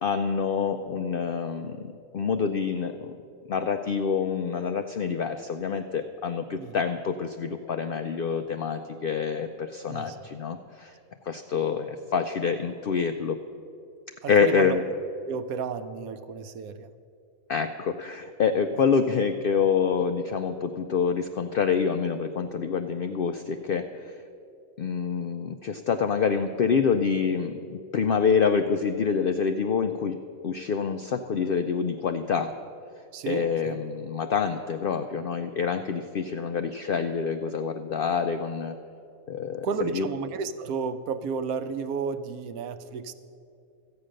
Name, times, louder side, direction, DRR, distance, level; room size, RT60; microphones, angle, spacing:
voice 1, 0.0-3.2 3.5-10.9 11.2-13.4 14.3-14.8 17.5-24.2 24.8-30.2 30.4-32.5 33.3-38.8 39.3-40.1, left 6 dB, 80° left, 7 dB, 0.5 m, -27 dB
voice 2, 14.2-14.8 15.3-16.9 33.1-33.8 39.6-43.1, right 5 dB, 85° right, 11 dB, 1.1 m, -32 dB
13.5 x 8.8 x 6.4 m, 2.6 s
omnidirectional pair, 1.5 m